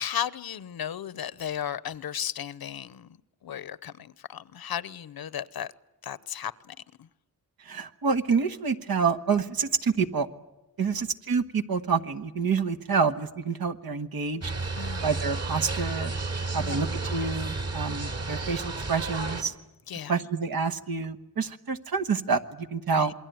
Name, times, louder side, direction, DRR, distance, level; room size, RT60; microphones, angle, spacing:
voice 1, 0.0-3.2 3.4-5.7 6.0-7.1 10.8-11.1 14.8-15.1 16.5-16.8 19.9-20.1 22.9-23.1, left 9 dB, 85° left, 0.9 m, -35 dB
voice 2, 7.6-10.3 10.8-14.5 15.0-16.1 16.5-19.5 20.1-23.1, right 5 dB, 80° right, 1.5 m, -28 dB
sound 1, 14.4-19.4, right 3 dB, 45° right, 2.7 m, -32 dB
27.5 x 22.0 x 9.3 m
wide cardioid pair, 105°, 36 cm